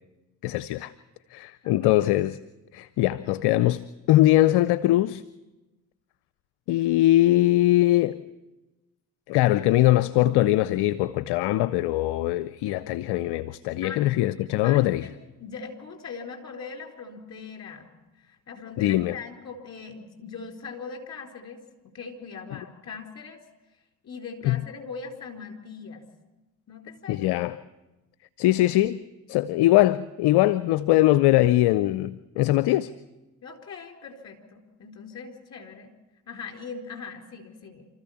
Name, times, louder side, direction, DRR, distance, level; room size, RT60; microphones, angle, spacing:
voice 1, 0.4-0.9 1.3-2.4 2.7-3.8 4.1-5.2 6.7-8.2 9.3-15.0 18.8-19.1 24.4-24.6 27.1-27.5 28.4-29.0 29.3-32.9, left 15 dB, 65° left, 0.7 m, -21 dB
voice 2, 1.6-2.0 13.8-14.0 14.6-17.9 18.1-23.4 24.0-26.1 26.7-27.3 33.4-35.9 36.3-37.9, left 5 dB, 35° left, 4.2 m, -40 dB
28.5 x 14.0 x 7.2 m
hypercardioid pair, 50°, 43 cm